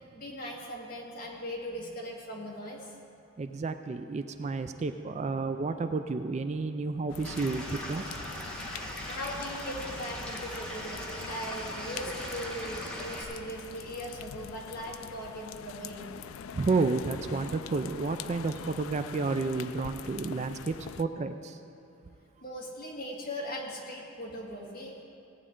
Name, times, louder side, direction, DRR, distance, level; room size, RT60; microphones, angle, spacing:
voice 1, 0.1-2.9 9.1-16.1 22.4-25.0, equal, 45° left, 2.0 m, -39 dB
voice 2, 3.4-8.0 16.5-21.6, right 3 dB, 30° right, 0.3 m, -31 dB
Street Scene - After The Rain - Pedestrian & Raindrops, 7.1-21.0, left 8 dB, 80° left, 0.3 m, -44 dB
Stream / Liquid, 7.2-13.2, equal, 5° left, 1.5 m, -39 dB
17.0 x 9.4 x 3.7 m
head